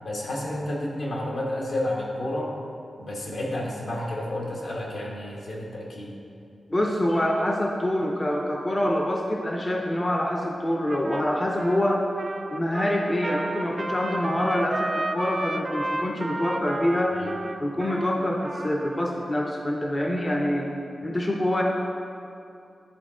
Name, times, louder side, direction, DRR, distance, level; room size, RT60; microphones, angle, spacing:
voice 1, 0.0-2.5 3.0-6.1 17.1-17.3, left 1 dB, 75° left, -3 dB, 1.3 m, -31 dB
voice 2, 6.7-12.1 12.5-17.2 17.6-20.7 21.0-21.6, left 1 dB, 20° left, 0 dB, 0.5 m, -25 dB
Trumpet, 10.9-19.2, right 2 dB, 35° right, 0.4 m, -33 dB
10.5 x 4.1 x 3.7 m, 2.6 s
wide cardioid pair, 135°, 0 cm